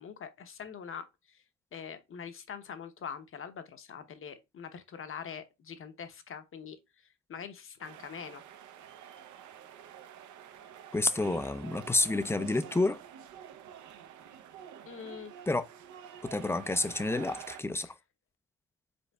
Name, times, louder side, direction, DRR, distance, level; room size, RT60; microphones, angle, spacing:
voice 1, 0.0-1.4 1.7-6.8 7.3-8.4 14.9-15.3 17.8-17.9, left 7 dB, 45° left, 0.8 m, -43 dB
sound 1, 7.8-17.6, right 9 dB, 75° right, 0.6 m, -48 dB
voice 2, 10.9-13.0 15.5-15.7 16.2-17.9, left 2 dB, 10° left, 0.3 m, -29 dB
5.3 x 3.8 x 2.3 m
cardioid pair, 90°, 30 cm